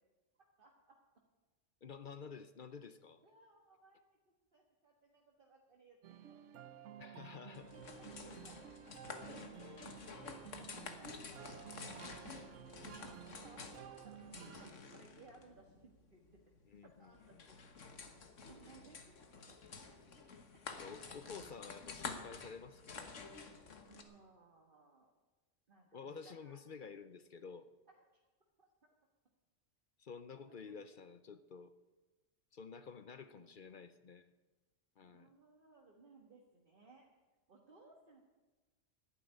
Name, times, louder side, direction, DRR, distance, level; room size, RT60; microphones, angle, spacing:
voice 1, 0.6-0.9 3.2-7.1 7.5-7.6 8.0-8.6 9.1-9.7 10.4-11.6 12.5-16.4 16.8-18.1 18.4-20.0 23.8-25.1 25.7-26.6 27.9-28.0 28.6-28.9 30.3-31.0 33.3-33.8 35.0-37.1 37.5-38.2, right 3 dB, 45° right, 0 dB, 1.6 m, -64 dB
voice 2, 1.8-3.2 7.0-7.7 14.2-14.7 16.7-17.5 20.7-23.1 25.9-27.7 30.0-31.7 32.5-34.3 35.0-35.3, left 5 dB, 50° left, 12 dB, 0.7 m, -51 dB
sound 1, 6.0-14.7, right 10 dB, 80° right, 1.0 m, -53 dB
sound 2, 7.5-24.0, left 4 dB, 80° left, 1.7 m, -50 dB
11.0 x 9.3 x 9.8 m, 1.2 s
omnidirectional pair, 1.3 m